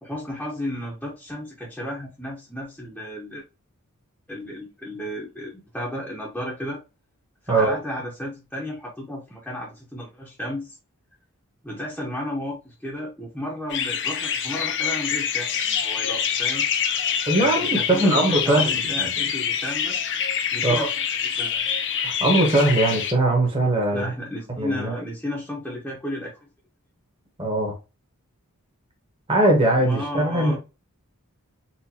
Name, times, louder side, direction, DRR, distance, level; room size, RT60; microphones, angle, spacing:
voice 1, 0.0-3.4 4.3-6.8 7.4-10.8 11.6-16.7 17.4-20.0 20.5-20.9 21.4-21.7 23.9-26.5 29.8-30.6, left 1 dB, 5° left, 0.7 m, -33 dB
sound 1, 13.7-23.1, left 8 dB, 55° left, 0.6 m, -26 dB
voice 2, 17.3-19.1 20.6-20.9 22.0-24.1 24.6-25.0 27.4-27.7 29.3-30.6, right 1 dB, 25° right, 1.0 m, -21 dB
4.2 x 2.5 x 2.7 m
head